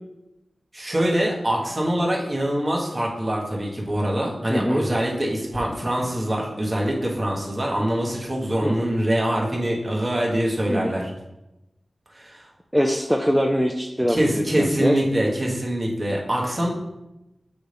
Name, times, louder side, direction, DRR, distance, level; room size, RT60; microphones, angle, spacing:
voice 1, 0.7-11.1 12.1-12.5 14.1-16.7, right 1 dB, 30° right, -2 dB, 1.3 m, -24 dB
voice 2, 4.5-4.9 8.6-8.9 10.7-10.9 12.7-15.0, equal, ahead, 2 dB, 0.4 m, -23 dB
7.9 x 3.9 x 3.4 m, 0.95 s
wide cardioid pair, 90°, 0 cm